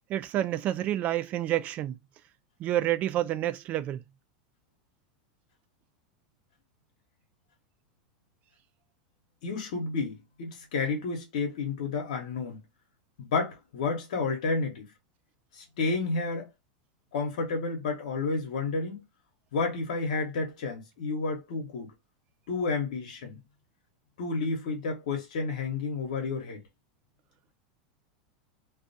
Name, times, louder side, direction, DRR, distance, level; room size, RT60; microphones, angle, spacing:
voice 1, 0.1-2.0 2.6-4.0, right 13 dB, 40° right, 0.3 m, -28 dB
voice 2, 9.4-12.6 13.2-14.9 15.5-16.5 17.1-19.0 19.5-21.9 22.5-23.4 24.2-26.6, left 4 dB, 80° left, 0.9 m, -31 dB
2.4 x 2.3 x 2.6 m
supercardioid pair, 120°, 4 cm